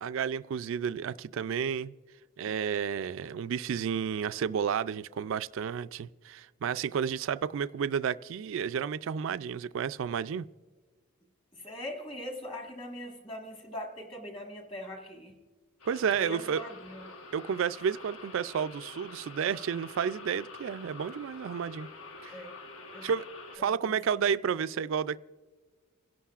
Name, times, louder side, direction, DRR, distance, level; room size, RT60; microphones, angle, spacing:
voice 1, 0.0-1.9 2.4-10.4 15.9-16.6 17.3-21.9 22.2-22.3 23.0-25.2, right 7 dB, 60° right, 15 dB, 0.3 m, -31 dB
voice 2, 11.5-15.4 16.2-17.1 22.3-22.6 22.9-23.1 23.6-24.0, left 1 dB, 25° left, 2 dB, 1.5 m, -42 dB
sound 1, 15.8-23.6, left 3 dB, 85° left, 1.3 m, -47 dB
29.5 x 11.5 x 2.4 m, 1.4 s
head